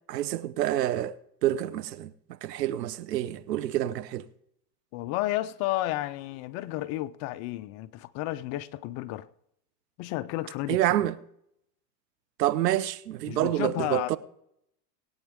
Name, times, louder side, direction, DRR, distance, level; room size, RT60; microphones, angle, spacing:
voice 1, 0.1-2.1 2.4-4.3 10.7-11.1 12.4-14.2, right 13 dB, 90° right, 0.9 m, -27 dB
voice 2, 4.9-9.3 10.0-10.8 13.3-14.2, left 16 dB, 35° left, 0.4 m, -32 dB
20.0 x 8.8 x 3.5 m
supercardioid pair, 125°, 47 cm